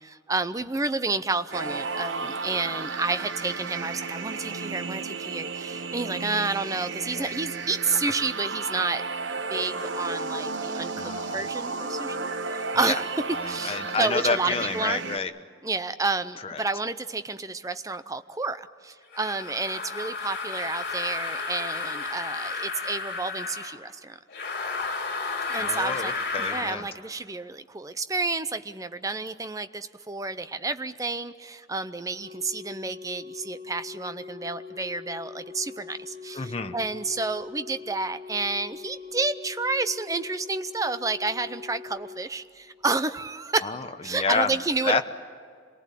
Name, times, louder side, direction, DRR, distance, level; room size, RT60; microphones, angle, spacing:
voice 1, 0.0-9.0 9.5-13.1 13.5-15.0 15.6-24.1 25.5-26.1 26.4-43.7 44.0-45.0, right 3 dB, 15° right, 12 dB, 0.6 m, -30 dB
sound 1, 1.5-15.2, right 4 dB, 75° right, 1.0 m, -33 dB
voice 2, 11.0-11.4 12.8-13.0 13.3-15.3 16.4-16.6 25.6-26.9 36.3-36.7 43.6-44.5 44.8-45.0, left 4 dB, 30° left, 8 dB, 0.9 m, -29 dB
sound 2, 19.1-23.8 24.3-26.7, left 4 dB, 50° left, 3.2 m, -32 dB
Organ, 32.2-43.1 44.2-44.4, left 5 dB, 45° right, 0.9 m, -43 dB
26.5 x 19.0 x 8.4 m, 2.1 s
head